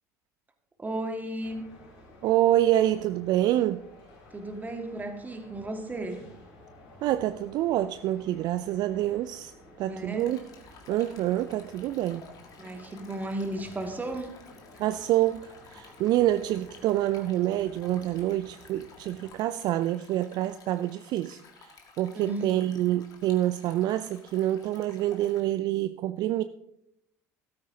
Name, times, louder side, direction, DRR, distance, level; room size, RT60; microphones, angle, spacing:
voice 1, 0.8-1.6 4.3-6.3 9.9-10.3 12.6-14.4 22.2-22.5, right 1 dB, 20° right, 5 dB, 1.8 m, -34 dB
sound 1, 1.4-19.3, left 2 dB, 65° left, 3.9 m, -53 dB
voice 2, 2.2-3.8 7.0-9.5 9.8-10.4 10.9-12.3 14.8-26.4, right 13 dB, 50° right, 13 dB, 0.4 m, -27 dB
Stream, 10.2-25.4, left 5 dB, 45° left, 1.9 m, -54 dB
14.0 x 13.0 x 2.8 m, 0.80 s
figure-of-eight pair, 65°, 9 cm